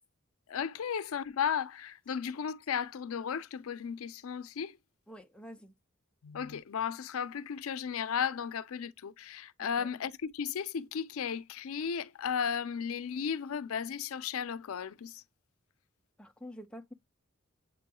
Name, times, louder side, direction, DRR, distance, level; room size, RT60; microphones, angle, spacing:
voice 1, 0.5-4.8 6.2-15.2, left 7 dB, 85° left, 0.4 m, -35 dB
voice 2, 5.1-5.7 9.6-9.9 16.2-16.9, equal, 5° left, 0.4 m, -48 dB
7.5 x 2.9 x 2.2 m
head